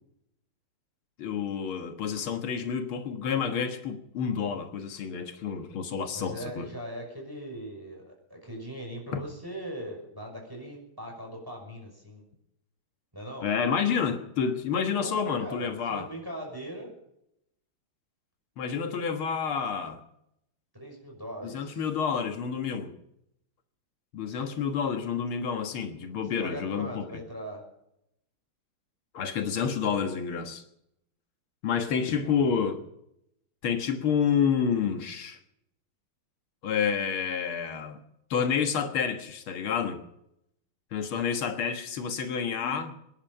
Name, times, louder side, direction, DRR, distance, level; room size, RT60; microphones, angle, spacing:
voice 1, 1.2-6.7 9.1-9.2 13.4-16.1 18.6-20.0 21.4-22.9 24.1-27.1 29.1-30.6 31.6-32.8 33.6-35.4 36.6-38.0 38.3-40.0 40.9-43.0, left 6 dB, 85° left, 2.4 m, -29 dB
voice 2, 6.0-12.2 13.1-13.5 15.0-16.9 20.7-21.8 26.4-27.6 31.8-32.5, equal, 10° right, 5.9 m, -40 dB
24.5 x 11.0 x 5.4 m
omnidirectional pair, 2.2 m